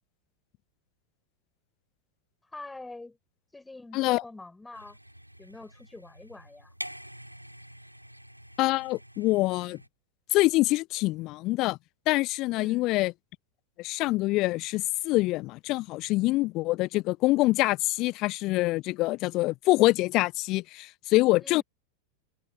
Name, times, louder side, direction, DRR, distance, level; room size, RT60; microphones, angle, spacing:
voice 1, 2.5-3.2 3.5-5.0 5.4-6.7 12.5-12.9 21.4-21.6, left 2 dB, 10° left, 5.0 m, -45 dB
sound 1, 4.7-9.9, equal, 90° right, 4.3 m, -46 dB
voice 2, 8.6-9.8 10.3-11.8 12.1-13.1 13.8-21.6, left 20 dB, 40° left, 0.5 m, -25 dB
figure-of-eight pair, 90°, 0 cm